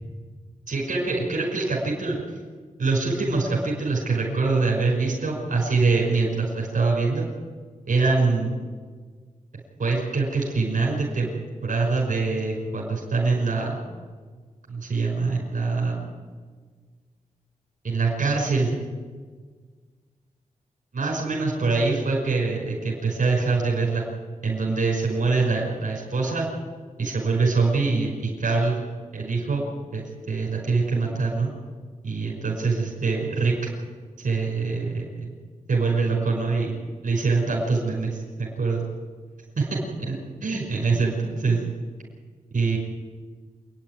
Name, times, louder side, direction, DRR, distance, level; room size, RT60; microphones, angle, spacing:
voice 1, 0.7-2.2 2.8-7.3 7.9-8.5 9.8-11.3 11.6-13.8 14.7-16.1 17.8-18.7 20.9-24.0 24.4-26.5 27.0-28.8 29.1-31.5 32.0-33.5 34.2-35.3 35.7-36.7 37.0-38.8 39.6-41.6 42.5-42.8, right 4 dB, 75° right, -3 dB, 5.7 m, -24 dB
27.5 x 10.0 x 9.4 m, 1.6 s
cardioid pair, 65°, 14 cm